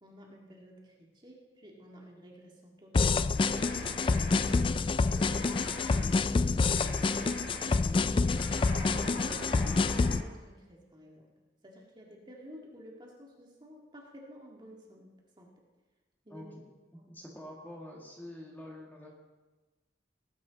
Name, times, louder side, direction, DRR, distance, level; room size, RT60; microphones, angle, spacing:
voice 1, 0.0-5.8 6.8-9.5 10.1-11.3 11.6-15.5 16.3-16.5 17.0-17.1, equal, 25° right, -2 dB, 2.0 m, -53 dB
sound 1, 2.9-10.2, left 4 dB, 30° left, 0.3 m, -27 dB
sound 2, 3.3-10.2, left 1 dB, 70° left, 2.7 m, -44 dB
voice 2, 16.3-16.6 16.9-19.1, left 1 dB, 10° left, -2 dB, 1.8 m, -46 dB
18.5 x 8.7 x 4.0 m, 1.2 s
head